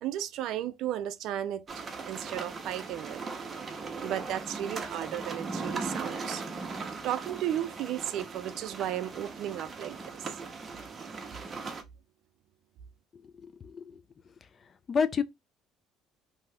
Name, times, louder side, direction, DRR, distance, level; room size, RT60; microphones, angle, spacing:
voice 1, 0.0-3.2 4.0-6.4 6.7-10.4, right 11 dB, 65° right, 0.4 m, -35 dB
sound 1, 1.7-11.8, right 4 dB, 30° right, 0.7 m, -38 dB
voice 2, 13.1-14.0 14.9-15.2, left 6 dB, 35° left, 0.4 m, -30 dB
2.7 x 2.3 x 3.3 m
cardioid pair, 105°, 0 cm